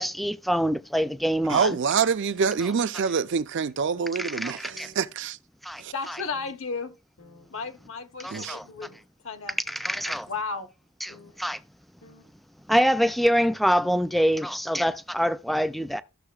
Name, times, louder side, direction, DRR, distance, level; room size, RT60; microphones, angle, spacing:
voice 1, 0.0-1.8 2.6-2.8 4.2-4.9 5.6-6.2 8.2-8.7 9.5-10.3 11.0-11.6 12.7-16.0, equal, ahead, 0.4 m, -25 dB
sound 1, 1.4-1.6 2.3-2.5 3.2-3.3 3.9-4.1 4.7-5.0 5.7-5.8 6.3-6.6 7.2-7.5 8.8-9.0 9.7-9.9 11.1-11.3 11.7-11.8 12.0-12.2, left 2 dB, 85° left, 1.9 m, -52 dB
voice 2, 1.5-5.4 5.8-5.9 8.3-8.6, right 6 dB, 60° right, 0.5 m, -26 dB
voice 3, 5.9-6.9 7.5-9.0 9.2-9.6 10.1-10.7, left 4 dB, 65° left, 1.0 m, -34 dB
13.5 x 6.7 x 2.4 m
head